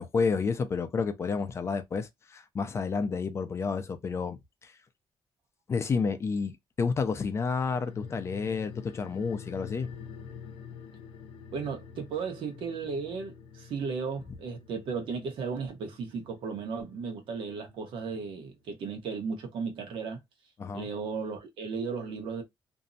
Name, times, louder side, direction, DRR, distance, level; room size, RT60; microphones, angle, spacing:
voice 1, 0.0-4.8 5.7-9.9 20.6-20.9, left 5 dB, 30° left, 0.4 m, -30 dB
sound 1, 7.6-18.4 18.7-18.8, left 7 dB, 85° left, 0.5 m, -48 dB
voice 2, 11.5-20.2 20.7-22.4, right 5 dB, 70° right, 0.9 m, -35 dB
2.6 x 2.0 x 2.5 m
cardioid pair, 140°, 9 cm